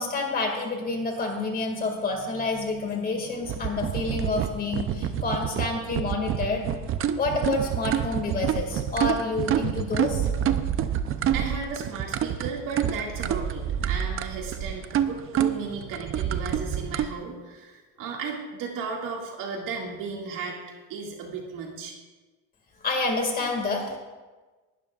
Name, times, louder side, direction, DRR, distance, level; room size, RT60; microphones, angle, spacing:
voice 1, 0.0-6.7 7.2-10.3 22.8-24.0, left 3 dB, 25° left, 2 dB, 2.1 m, -28 dB
sound 1, 3.4-17.1, right 9 dB, 35° right, 0.6 m, -27 dB
voice 2, 11.3-21.9, right 5 dB, 65° right, -1 dB, 2.1 m, -35 dB
20.0 x 12.5 x 2.4 m, 1.3 s
cardioid pair, 160°, 35 cm